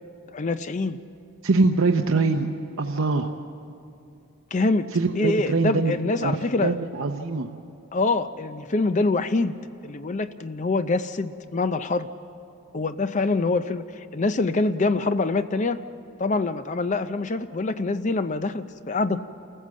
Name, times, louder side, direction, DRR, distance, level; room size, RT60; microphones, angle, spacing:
voice 1, 0.3-1.0 4.5-4.9 5.2-6.7 7.9-9.6 9.8-12.1 12.7-15.8 16.2-19.2, left 3 dB, 35° left, 11 dB, 0.5 m, -25 dB
voice 2, 1.4-2.5 2.8-3.3 4.9-5.9 6.2-6.4 6.6-7.5, right 3 dB, 65° right, 3 dB, 0.8 m, -23 dB
28.5 x 14.5 x 7.5 m, 2.6 s
head